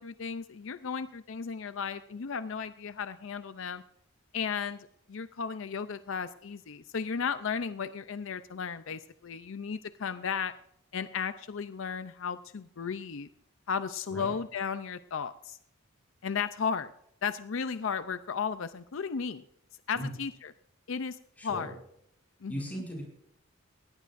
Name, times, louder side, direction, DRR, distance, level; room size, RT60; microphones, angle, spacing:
voice 1, 0.0-3.8 4.3-10.5 10.9-13.3 13.7-15.6 16.2-16.9 17.2-19.4 19.9-20.5 20.9-21.7 22.4-22.6, left 6 dB, 65° left, 12 dB, 0.5 m, -35 dB
voice 2, 21.4-21.7 22.5-23.0, equal, 5° left, -2 dB, 7.4 m, -37 dB
19.5 x 17.0 x 2.6 m, 0.73 s
head